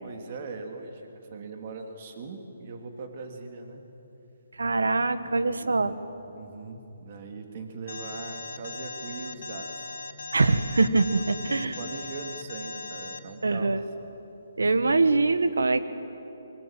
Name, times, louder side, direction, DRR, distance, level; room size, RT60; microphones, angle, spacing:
voice 1, 0.0-3.8 5.2-6.0 6.4-9.9 10.9-13.7, right 4 dB, 45° right, 4 dB, 3.0 m, -40 dB
voice 2, 4.6-5.9 10.3-11.7 13.4-13.8 14.6-15.8, right 3 dB, 90° right, 12 dB, 1.5 m, -23 dB
Alarm, 7.9-13.2, left 3 dB, 80° left, 3.5 m, -39 dB
25.5 x 24.0 x 9.2 m, 3.0 s
hypercardioid pair, 150°, 0 cm